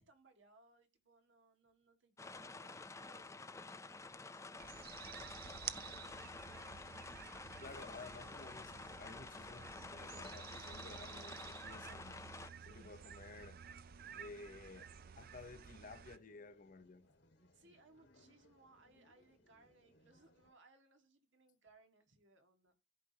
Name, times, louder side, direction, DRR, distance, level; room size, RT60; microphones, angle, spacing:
voice 1, 0.0-3.5 4.3-6.9 12.6-13.4 17.5-22.8, right 2 dB, 75° right, 1.8 m, -68 dB
sound 1, 2.2-12.5, left 3 dB, 15° left, 0.5 m, -50 dB
sound 2, 4.6-16.2, right 9 dB, 50° right, 0.5 m, -52 dB
voice 2, 7.6-12.2 12.6-13.6 14.1-17.1, left 3 dB, 45° left, 0.8 m, -54 dB
sound 3, 12.1-20.5, left 1 dB, 65° left, 1.6 m, -71 dB
15.0 x 5.1 x 2.8 m
head